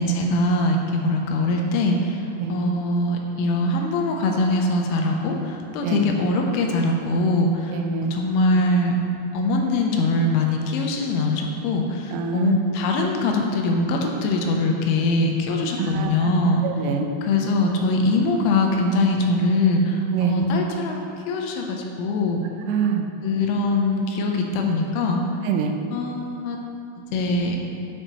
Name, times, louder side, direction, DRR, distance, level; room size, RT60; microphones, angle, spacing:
voice 1, 0.0-2.2 2.5-9.0 9.3-16.6 17.2-22.4 23.2-25.2 25.9-26.6 27.1-27.6, left 2 dB, 80° left, 2 dB, 3.2 m, -22 dB
voice 2, 7.7-8.1 12.1-12.5 15.8-16.4 16.6-17.1 20.1-20.5 22.7-23.1 25.4-25.8, right 6 dB, 90° right, 4 dB, 3.4 m, -25 dB
12.5 x 6.4 x 3.0 m, 2.6 s
omnidirectional pair, 5.7 m